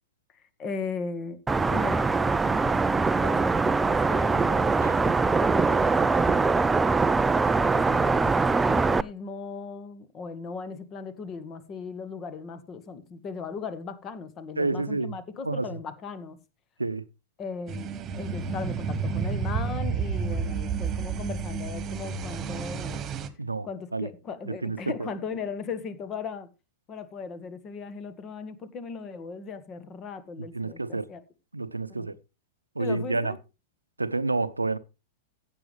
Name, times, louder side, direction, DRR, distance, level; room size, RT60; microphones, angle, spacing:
voice 1, 0.6-1.4 1.7-2.8 3.2-6.5 7.7-16.4 17.4-17.9 18.2-23.1 23.6-26.5 26.9-31.2 31.9-32.2 32.8-33.4, left 5 dB, 30° left, 1.8 m, -37 dB
sound 1, 1.5-9.0, right 4 dB, 10° right, 0.5 m, -23 dB
voice 2, 14.6-15.2 15.4-15.8 16.8-17.0 23.4-23.7 23.9-24.1 24.5-25.1 30.5-31.1 31.5-32.2 32.8-33.4 34.0-34.8, right 3 dB, 85° right, 0.8 m, -29 dB
sound 2, 17.7-23.3, right 5 dB, 30° right, 1.6 m, -31 dB
15.5 x 8.0 x 3.4 m
figure-of-eight pair, 100°, 0 cm